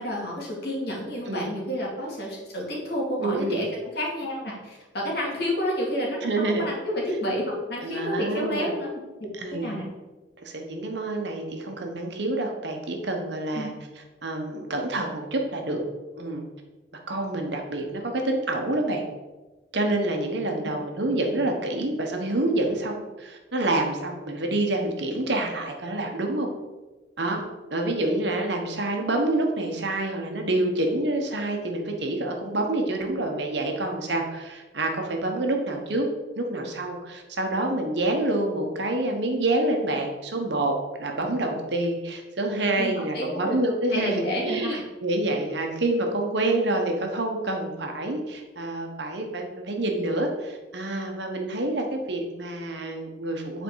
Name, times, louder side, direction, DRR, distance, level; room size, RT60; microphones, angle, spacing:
voice 1, 0.0-3.7 3.9-9.0 9.6-9.9 13.5-13.7 42.8-43.6 43.9-44.8, equal, 55° left, -3 dB, 2.2 m, -30 dB
voice 2, 3.2-3.6 6.2-6.7 7.8-8.7 9.4-9.7 10.4-13.7 14.2-15.8 16.1-16.4 17.1-19.0 19.7-26.5 27.2-27.4 27.7-36.1 36.4-40.7 41.0-53.6, right 2 dB, 65° right, 2 dB, 1.1 m, -27 dB
7.9 x 4.5 x 4.6 m, 1.2 s
head